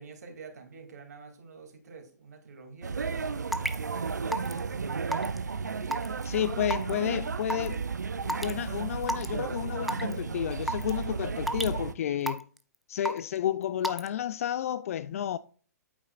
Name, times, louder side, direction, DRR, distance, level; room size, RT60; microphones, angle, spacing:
voice 1, 0.0-4.9, right 5 dB, 70° right, 2.4 m, -47 dB
sound 1, 2.8-11.9, right 5 dB, 85° right, 0.6 m, -33 dB
Raindrop / Water tap faucet / Drip, 3.5-3.8 4.3-4.6 5.1-5.4 5.9-6.2 6.7-6.9 7.5-7.7 8.3-8.5 9.0-9.3 9.9-10.1 10.7-10.9 11.5-11.7 12.3-12.6 13.1-13.4 13.8-14.1, equal, ahead, 0.5 m, -30 dB
voice 2, 6.2-7.8 8.2-12.5 12.9-15.4, left 10 dB, 55° left, 0.4 m, -31 dB
8.7 x 8.5 x 2.4 m
figure-of-eight pair, 125°, 9 cm